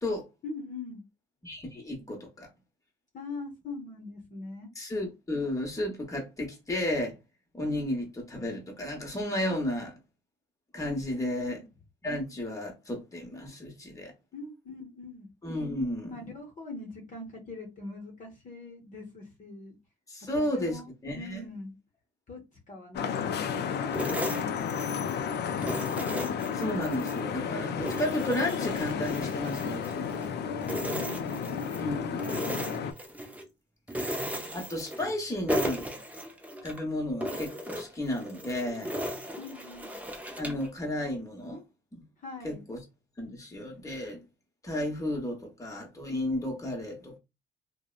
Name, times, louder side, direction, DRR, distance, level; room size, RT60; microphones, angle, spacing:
voice 1, 0.4-1.0 3.1-4.7 11.1-11.7 14.3-15.3 16.1-19.8 20.2-20.8 21.1-21.8 22.3-24.6 30.7-31.6 39.4-40.0 42.2-42.6, left 3 dB, 40° left, 0.8 m, -42 dB
voice 2, 1.4-2.5 4.7-7.2 7.5-10.0 10.7-11.6 12.0-14.1 15.4-16.3 20.1-21.5 26.5-30.1 31.8-32.4 34.1-35.9 36.6-39.0 40.4-41.6 41.9-42.0 42.4-42.8 43.2-44.2 44.6-47.2, left 1 dB, 15° left, 1.0 m, -33 dB
Vehicle horn car horn honking / Traffic noise roadway noise, 22.9-32.9, left 7 dB, 60° left, 0.4 m, -32 dB
sound 1, 23.9-25.2 25.6-27.2 27.6-30.3 30.6-31.9 32.2-33.5 33.9-35.2 35.5-36.8 37.2-40.7, equal, 5° right, 0.5 m, -36 dB
2.7 x 2.1 x 2.4 m
cardioid pair, 90°, 20 cm